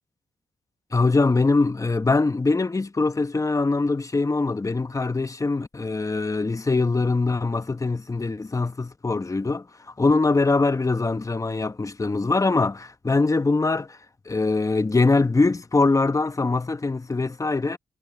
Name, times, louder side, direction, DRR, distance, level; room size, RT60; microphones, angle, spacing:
voice 1, 0.9-14.0 14.2-17.8, left 3 dB, 25° left, 1.4 m, -23 dB
supercardioid pair, 50°, 13 cm